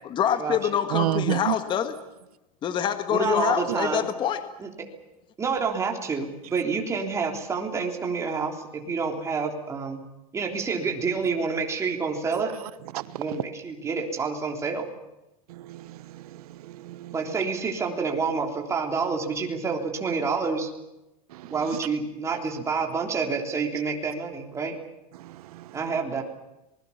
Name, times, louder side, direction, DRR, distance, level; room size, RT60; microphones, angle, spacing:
voice 1, 0.1-1.9 2.6-4.4, left 9 dB, 25° left, 9 dB, 1.5 m, -25 dB
voice 2, 0.9-1.5 12.9-13.2 15.5-17.1 21.3-21.5 25.2-25.7, right 16 dB, 80° right, 16 dB, 1.1 m, -31 dB
voice 3, 3.1-4.1 4.6-4.9 5.4-10.0 10.3-12.5 13.2-14.9 17.1-20.7 21.4-24.8 25.7-26.2, right 5 dB, 15° right, 2 dB, 3.4 m, -28 dB
26.0 x 21.0 x 7.2 m, 0.95 s
supercardioid pair, 155°, 19 cm